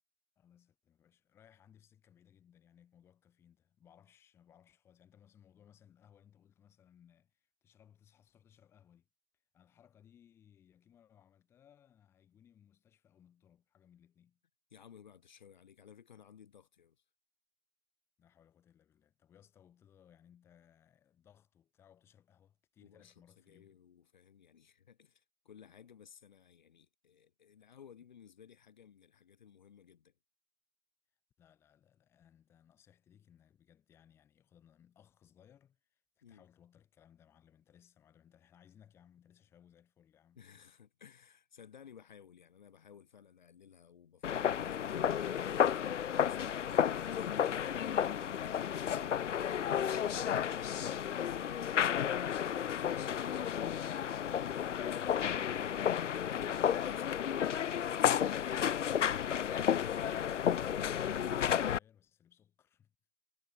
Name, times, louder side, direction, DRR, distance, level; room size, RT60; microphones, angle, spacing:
voice 1, 0.4-9.1 9.5-14.4 18.2-23.8 31.4-40.6 60.7-62.9, left 9 dB, 5° left, 2.3 m, -64 dB
voice 2, 14.7-17.0 22.8-30.1 36.2-36.4 40.4-47.8 56.2-57.5 57.9-58.7, left 8 dB, 35° left, 2.2 m, -58 dB
sound 1, 44.2-61.8, left 9 dB, 75° left, 0.5 m, -32 dB
figure-of-eight pair, 160°, 38 cm